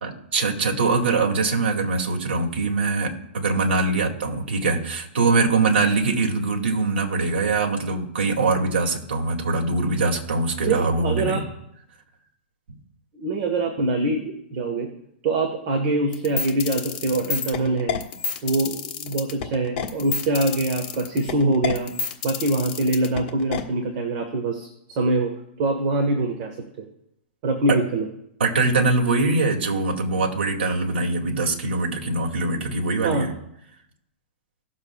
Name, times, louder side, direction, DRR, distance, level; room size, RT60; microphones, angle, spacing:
voice 1, 0.0-11.4 27.7-27.8 28.4-33.3, right 3 dB, 80° right, 1 dB, 2.5 m, -23 dB
voice 2, 10.6-11.5 13.1-14.9 15.2-18.0 18.4-21.9 22.2-26.8 27.4-28.1 33.0-33.3, right 2 dB, 35° right, 3 dB, 1.5 m, -24 dB
sound 1, 16.1-23.6, left 7 dB, 35° left, 1.3 m, -29 dB
18.5 x 7.3 x 2.4 m, 0.79 s
hypercardioid pair, 165°, 6 cm